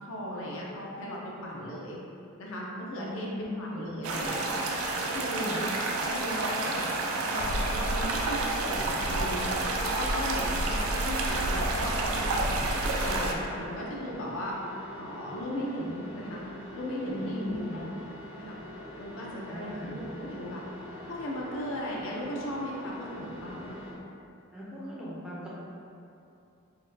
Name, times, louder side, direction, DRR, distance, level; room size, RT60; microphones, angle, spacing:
voice 1, 0.0-2.0 2.4-4.6 5.1-5.6 6.0-6.9 7.3-9.5 9.8-12.6 13.0-14.5 15.0-16.5 16.7-17.8 18.4-18.6 19.0-20.6 21.1-23.8, equal, 65° left, -3 dB, 0.5 m, -37 dB
voice 2, 2.9-3.9 5.3-5.7 17.1-17.9 19.5-20.0 24.5-25.5, left 1 dB, 5° right, -8 dB, 0.5 m, -38 dB
sound 1, 4.0-13.3, right 2 dB, 80° right, 0.4 m, -29 dB
sound 2, 13.3-23.9, left 1 dB, 60° right, 1.0 m, -45 dB
3.9 x 2.2 x 2.6 m, 2.7 s
head